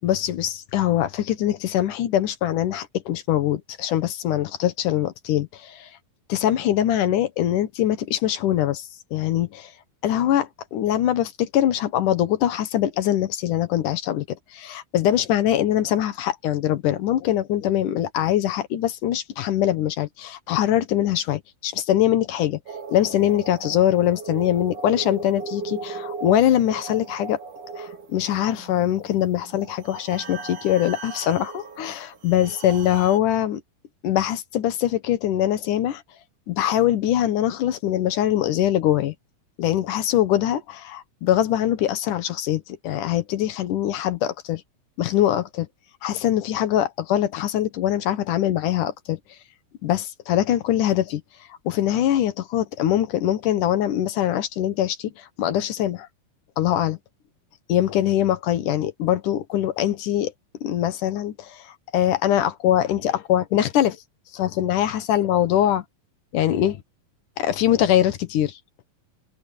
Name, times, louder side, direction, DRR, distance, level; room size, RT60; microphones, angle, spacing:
voice 1, 0.0-5.9 6.3-9.7 10.0-22.6 22.9-27.4 27.8-33.6 34.0-36.0 36.5-39.1 39.6-44.6 45.0-45.7 46.0-49.2 49.8-51.2 51.7-56.1 56.6-57.0 57.7-60.3 60.6-64.0 64.3-65.8 66.3-66.8 67.4-68.6, left 11 dB, 70° left, 2.5 m, -23 dB
sound 1, 22.7-33.2, right 4 dB, 60° right, 5.1 m, -38 dB
omnidirectional pair, 4.1 m